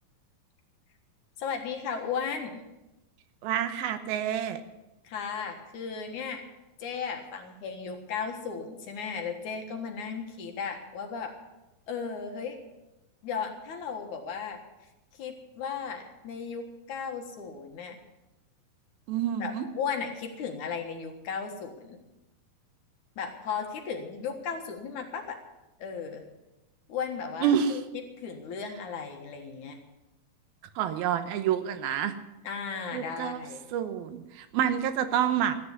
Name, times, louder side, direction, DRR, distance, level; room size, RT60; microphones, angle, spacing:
voice 1, 1.4-2.6 5.0-6.4 6.8-11.3 11.9-12.6 13.2-14.6 15.2-18.0 19.4-22.0 23.2-25.4 25.8-26.2 26.9-27.8 28.2-29.8 32.4-33.6, left 6 dB, 60° left, 4 dB, 2.7 m, -35 dB
voice 2, 3.4-4.6 19.1-19.7 27.4-27.8 30.8-32.1 32.9-33.4 33.7-35.6, right 9 dB, 90° right, 9 dB, 2.9 m, -28 dB
14.0 x 10.0 x 8.3 m, 1.0 s
omnidirectional pair, 4.2 m